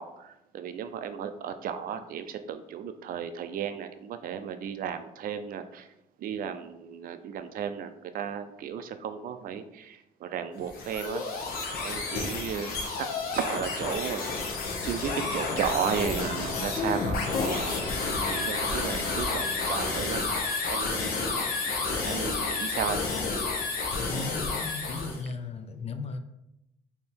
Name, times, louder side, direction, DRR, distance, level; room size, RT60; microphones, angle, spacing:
voice 1, 0.0-5.9 6.2-11.2 11.8-13.1 13.3-14.2 14.8-20.2 20.7-21.4 22.0-23.0, right 8 dB, 60° right, 9 dB, 0.5 m, -34 dB
sound 1, 10.6-25.2, left 3 dB, 70° left, 0.9 m, -30 dB
sound 2, 13.4-21.1, left 2 dB, 20° left, 1.0 m, -41 dB
voice 2, 24.0-26.2, left 3 dB, 40° left, 8 dB, 0.5 m, -36 dB
3.5 x 2.8 x 4.3 m, 0.87 s
cardioid pair, 85°, 16 cm